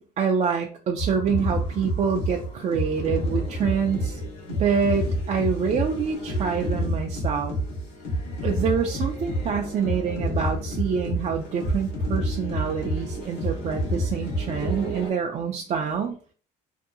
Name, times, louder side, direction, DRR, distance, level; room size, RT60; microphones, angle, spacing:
voice 1, 0.2-4.2 4.5-7.6 8.4-16.1, right 6 dB, 40° right, 2 dB, 0.4 m, -26 dB
sound 1, 1.0-15.1, equal, 80° left, 1.1 m, -29 dB
2.7 x 2.3 x 2.5 m, 0.41 s
cardioid pair, 110°, 17 cm